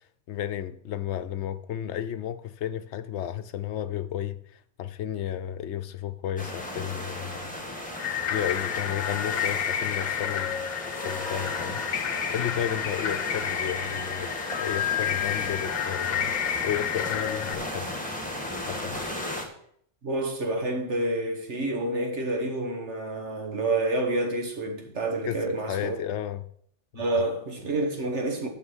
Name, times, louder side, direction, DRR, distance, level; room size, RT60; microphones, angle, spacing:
voice 1, 0.3-4.4 4.8-7.5 8.3-10.6 11.0-11.8 12.3-16.3 16.6-17.9 18.7-19.0 25.3-26.4, left 10 dB, 70° left, 0.9 m, -33 dB
sound 1, 6.4-19.5, left 1 dB, 5° left, 1.7 m, -35 dB
sound 2, 7.9-17.5, left 9 dB, 55° left, 0.5 m, -30 dB
voice 2, 20.0-26.0 26.9-28.5, right 2 dB, 70° right, 2.0 m, -28 dB
9.8 x 6.4 x 6.2 m
omnidirectional pair, 1.2 m